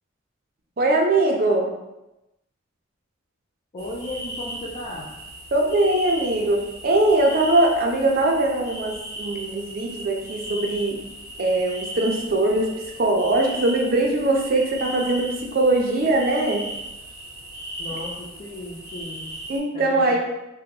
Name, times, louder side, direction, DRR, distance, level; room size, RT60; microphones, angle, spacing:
voice 1, 0.8-1.7 5.5-11.0 11.4-12.7 13.0-16.6 19.5-20.2, right 2 dB, 45° right, 0 dB, 0.5 m, -21 dB
voice 2, 3.7-5.2 17.8-19.4 19.7-20.2, left 1 dB, 35° left, -4 dB, 0.4 m, -35 dB
sound 1, 3.8-19.6, right 1 dB, 15° left, 0.7 m, -37 dB
2.8 x 2.2 x 3.7 m, 0.95 s
head